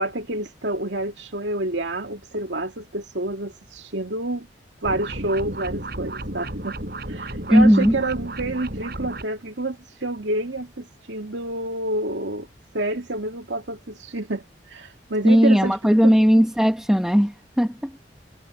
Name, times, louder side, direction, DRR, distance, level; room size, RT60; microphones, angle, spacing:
voice 1, 0.0-4.5 4.8-6.8 7.1-12.5 12.7-15.8 16.0-16.1, right 1 dB, 85° right, 2.3 m, -28 dB
sound 1, 4.8-9.2, right 1 dB, 55° right, 6.8 m, -33 dB
voice 2, 7.5-7.9 15.2-18.0, equal, 5° right, 1.7 m, -17 dB
head